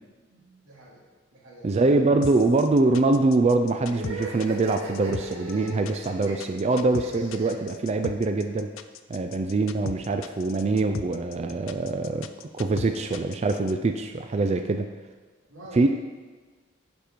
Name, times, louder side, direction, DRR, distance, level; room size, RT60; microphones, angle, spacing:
voice 1, 0.3-1.0 1.3-1.8 15.5-15.9, right 1 dB, 90° right, -5 dB, 2.4 m, -47 dB
voice 2, 1.6-8.7 9.1-12.3 12.5-14.9 15.7-15.9, right 3 dB, 35° right, 6 dB, 0.3 m, -24 dB
sound 1, 2.2-13.7, left 6 dB, 80° left, 0.4 m, -38 dB
sound 2, 3.9-8.5, right 1 dB, 70° right, 2.4 m, -38 dB
10.5 x 5.0 x 4.5 m, 1.4 s
head